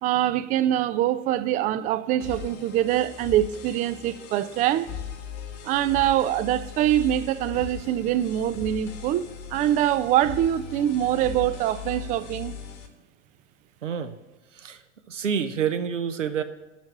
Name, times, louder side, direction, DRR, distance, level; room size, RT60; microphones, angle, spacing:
voice 1, 0.0-4.9 5.6-12.5, right 12 dB, 25° right, 0.3 m, -24 dB
sound 1, 2.2-12.9, left 7 dB, 45° left, 1.4 m, -39 dB
voice 2, 13.8-14.2 14.5-14.8 15.1-16.4, right 7 dB, 85° right, 0.9 m, -28 dB
7.3 x 6.5 x 7.2 m
figure-of-eight pair, 90°, 36 cm